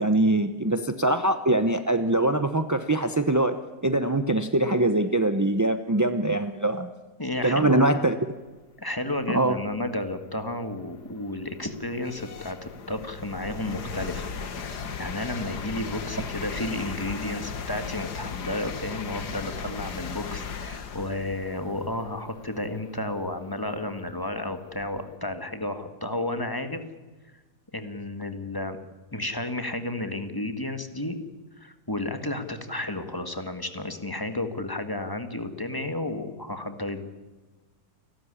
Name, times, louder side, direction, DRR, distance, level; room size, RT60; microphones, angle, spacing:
voice 1, 0.0-6.9 7.4-8.2 9.3-9.6, right 2 dB, 20° right, 9 dB, 0.4 m, -23 dB
voice 2, 7.2-7.8 8.8-14.3 14.6-26.8 27.7-28.8 29.1-31.2 31.6-37.0, left 1 dB, 15° left, 8 dB, 1.6 m, -32 dB
sound 1, 9.6-9.7 10.3-25.1, left 5 dB, 75° left, 2.1 m, -37 dB
29.0 x 13.0 x 9.9 m, 1.3 s
omnidirectional pair, 1.8 m